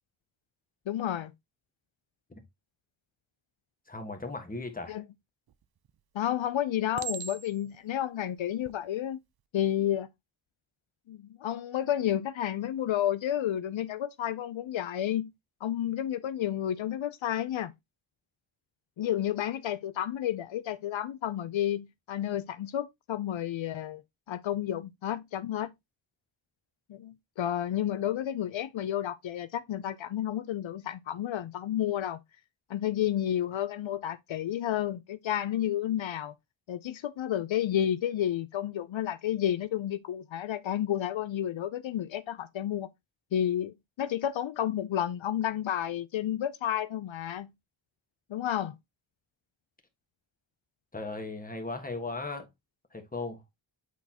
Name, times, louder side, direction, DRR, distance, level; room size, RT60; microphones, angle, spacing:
voice 1, 0.9-1.3 4.9-5.1 6.1-9.2 9.5-10.1 11.1-15.3 15.6-17.7 19.0-24.0 24.3-25.7 26.9-32.2 32.7-36.3 36.7-42.9 43.3-47.5 48.3-48.8, left 11 dB, 80° left, 0.5 m, -31 dB
voice 2, 3.9-5.0 50.9-52.5 52.9-53.4, left 3 dB, 20° left, 1.4 m, -37 dB
Chink clink, 5.5-6.0 7.0-7.8 8.5-8.8, right 8 dB, 55° right, 0.6 m, -39 dB
8.2 x 4.0 x 2.8 m
wide cardioid pair, 85°, 46 cm